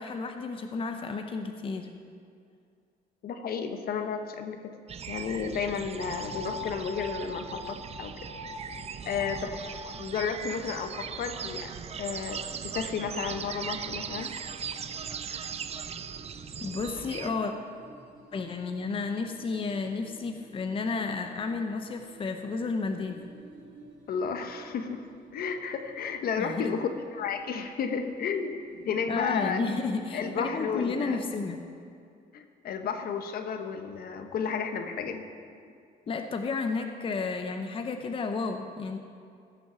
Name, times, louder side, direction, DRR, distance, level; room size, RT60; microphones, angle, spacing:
voice 1, 0.0-1.9 16.6-17.5 18.3-23.2 26.4-26.7 29.1-31.6 36.1-39.0, left 4 dB, 30° left, 5 dB, 0.7 m, -32 dB
voice 2, 3.2-4.8 5.1-8.1 9.0-9.5 10.0-11.7 12.0-14.3 24.1-25.0 25.3-28.5 28.8-29.6 30.1-31.2 32.3-35.2 36.1-36.2, left 6 dB, 65° left, 7 dB, 1.0 m, -32 dB
sound 1, 4.9-17.3, right 7 dB, 40° right, 0.5 m, -39 dB
sound 2, 6.0-7.8 8.2-8.6 9.0-9.8, left 1 dB, 70° right, 3.2 m, -41 dB
sound 3, 12.3-31.7, right 2 dB, 90° right, 1.9 m, -49 dB
16.0 x 6.1 x 6.8 m, 2.4 s
cardioid pair, 120°, 17 cm